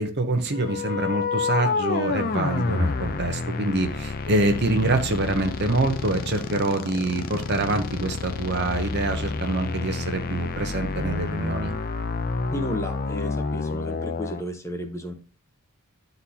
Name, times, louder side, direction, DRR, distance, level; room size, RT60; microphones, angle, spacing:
voice 1, 0.0-11.7, right 2 dB, 50° right, 7 dB, 0.8 m, -25 dB
sound 1, 0.5-14.4, left 4 dB, 40° left, 0.5 m, -29 dB
voice 2, 12.5-15.1, equal, 15° left, 4 dB, 0.8 m, -33 dB
11.5 x 4.0 x 2.8 m, 0.37 s
head